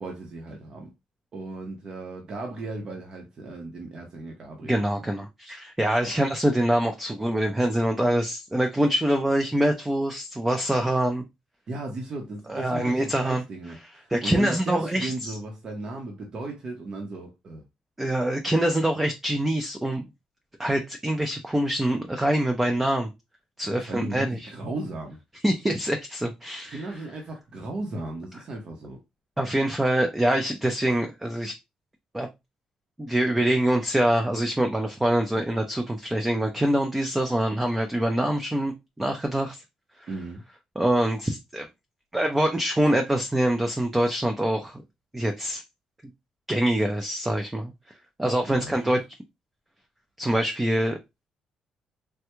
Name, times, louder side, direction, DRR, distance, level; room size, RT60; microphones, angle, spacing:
voice 1, 0.0-0.9 1.3-5.1 6.0-6.1 11.7-17.6 23.6-25.2 26.6-29.0 40.1-40.4 48.5-49.0, right 2 dB, 45° right, 0.8 m, -36 dB
voice 2, 4.6-11.2 12.5-13.4 14.1-15.3 18.0-20.0 20.6-23.1 23.6-24.5 25.4-26.9 29.4-31.5 32.1-32.3 33.0-38.7 39.0-39.6 40.8-41.7 42.1-44.8 45.1-45.6 46.5-47.7 48.2-49.0 50.2-51.0, right 1 dB, 10° right, 0.4 m, -24 dB
3.3 x 2.2 x 3.0 m
cardioid pair, 115°, 2 cm